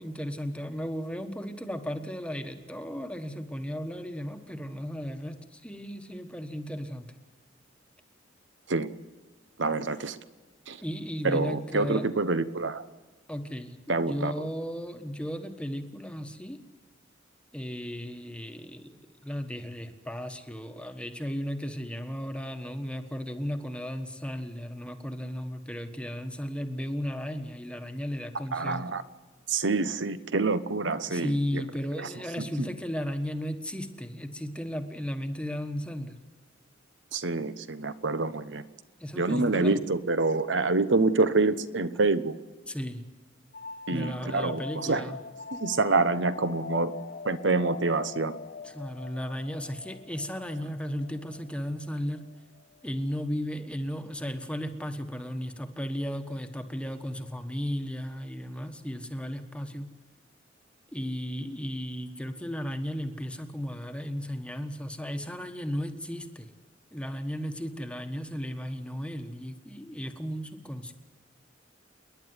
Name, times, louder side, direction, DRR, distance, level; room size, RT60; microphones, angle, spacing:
voice 1, 0.0-7.1 10.8-12.1 13.3-16.6 17.5-28.8 31.1-36.2 39.0-39.8 42.7-43.0 43.9-45.2 48.6-52.3 52.8-59.9 60.9-66.5 66.9-70.9, equal, 5° left, 6 dB, 1.4 m, -35 dB
voice 2, 9.6-10.2 10.7-10.8 11.2-12.8 13.9-14.5 28.5-29.0 29.5-31.6 32.0-32.1 32.4-32.7 37.1-38.6 39.1-42.4 43.9-45.1 45.5-46.9 47.2-48.4, right 3 dB, 70° right, 13 dB, 1.0 m, -27 dB
sound 1, 43.5-52.9, left 4 dB, 50° left, 0.6 m, -43 dB
29.0 x 11.0 x 9.7 m, 1.3 s
head